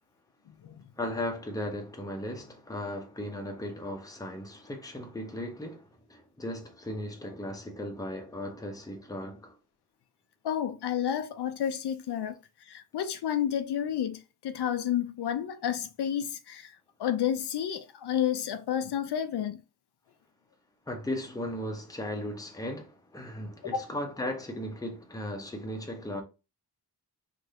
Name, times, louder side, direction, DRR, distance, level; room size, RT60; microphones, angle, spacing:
voice 1, 1.0-9.5 20.9-26.2, left 1 dB, 10° left, 0.7 m, -36 dB
voice 2, 10.4-12.4 12.7-16.7 17.0-19.6 23.7-23.9, left 9 dB, 80° left, 0.5 m, -30 dB
3.2 x 2.5 x 2.8 m
wide cardioid pair, 120°, 39 cm